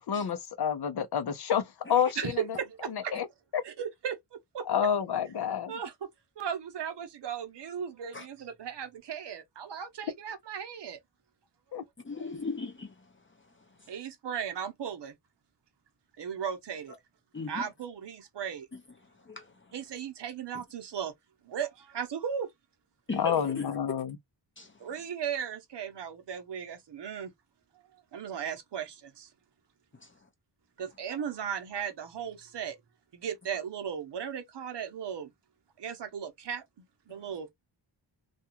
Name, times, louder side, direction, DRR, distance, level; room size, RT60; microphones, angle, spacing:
voice 1, 0.0-2.6 2.9-3.3 3.5-3.6 4.7-5.7 11.7-11.8 23.1-24.2, left 8 dB, 60° left, 0.7 m, -29 dB
voice 2, 2.2-3.1 3.6-4.2 4.5-4.7 5.7-6.1 6.4-11.0 13.9-15.2 16.2-17.0 17.5-18.7 19.7-21.1 21.4-22.5 24.8-27.3 28.1-29.3 30.8-32.8 33.1-35.3 35.8-37.5, right 8 dB, 65° right, 0.8 m, -36 dB
voice 3, 12.0-12.9 17.3-17.7 18.7-18.8 19.2-19.7 20.5-20.6 23.1-23.8 24.6-24.7 29.9-30.1, left 3 dB, 25° left, 0.7 m, -38 dB
2.5 x 2.3 x 2.8 m
wide cardioid pair, 120°, 46 cm